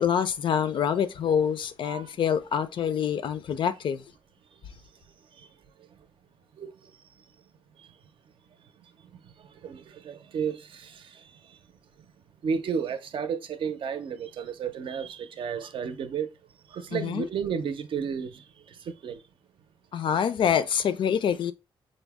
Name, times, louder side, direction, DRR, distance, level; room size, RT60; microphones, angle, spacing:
voice 1, 0.0-4.0 16.9-17.3 19.9-21.5, left 8 dB, 60° left, 0.4 m, -26 dB
voice 2, 9.6-11.2 12.4-16.3 16.7-19.2, right 6 dB, 65° right, 0.5 m, -32 dB
5.2 x 2.1 x 3.4 m
wide cardioid pair, 140°, 9 cm